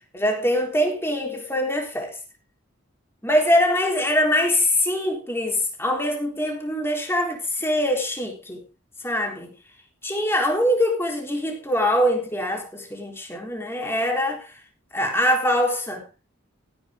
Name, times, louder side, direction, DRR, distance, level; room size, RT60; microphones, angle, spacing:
voice 1, 0.1-2.2 3.2-8.6 9.0-9.5 10.0-14.5 14.9-16.0, left 1 dB, 10° left, 3.9 m, -23 dB
16.0 x 10.0 x 3.7 m
head